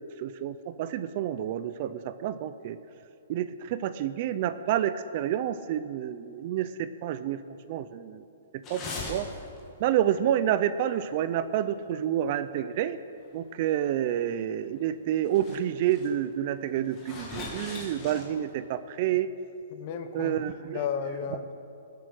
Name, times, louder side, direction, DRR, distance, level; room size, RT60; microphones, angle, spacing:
voice 1, 0.2-2.8 3.3-7.4 7.7-8.2 8.7-8.8 9.1-9.3 9.8-13.0 13.3-19.3 20.1-20.8, right 11 dB, 35° right, 13 dB, 0.5 m, -29 dB
sound 1, 8.6-9.7 9.9-10.1 11.0-11.1 11.5-11.6 12.3-12.4 14.0-14.1 14.8-14.9 15.2-15.6 15.8-16.1 16.8-18.5, left 3 dB, 20° left, 2.3 m, -39 dB
voice 2, 19.7-20.4 20.7-21.5, left 6 dB, 35° left, 8 dB, 1.1 m, -33 dB
21.5 x 8.4 x 6.4 m, 2.7 s
hypercardioid pair, 170°, 0 cm